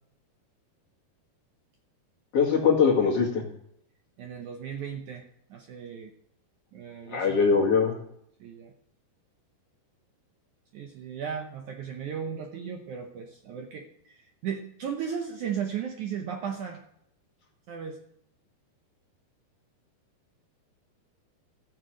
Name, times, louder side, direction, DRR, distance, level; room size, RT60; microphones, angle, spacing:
voice 1, 2.3-3.4 7.1-8.0, left 5 dB, 45° left, -1 dB, 2.4 m, -22 dB
voice 2, 4.2-6.1 6.7-7.4 8.4-8.7 10.7-16.8 17.7-18.0, right 7 dB, 75° right, 3 dB, 1.8 m, -36 dB
15.0 x 7.0 x 6.3 m, 0.74 s
omnidirectional pair, 4.6 m